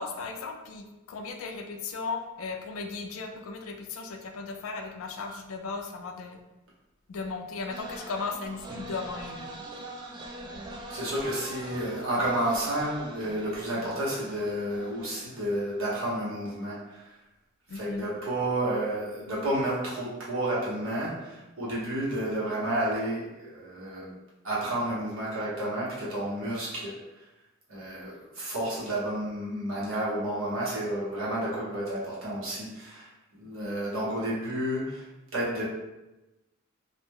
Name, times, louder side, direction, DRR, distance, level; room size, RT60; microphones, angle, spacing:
voice 1, 0.0-6.4 7.1-9.6 17.7-18.1, left 4 dB, 80° left, 4 dB, 0.4 m, -36 dB
sound 1, 7.7-15.9, right 1 dB, 20° right, 0.3 m, -43 dB
voice 2, 10.9-17.1 17.7-24.1 24.4-27.0 27.7-33.1 33.4-35.1 35.3-35.6, right 1 dB, 75° right, -7 dB, 1.1 m, -31 dB
2.5 x 2.1 x 3.5 m, 1.0 s
head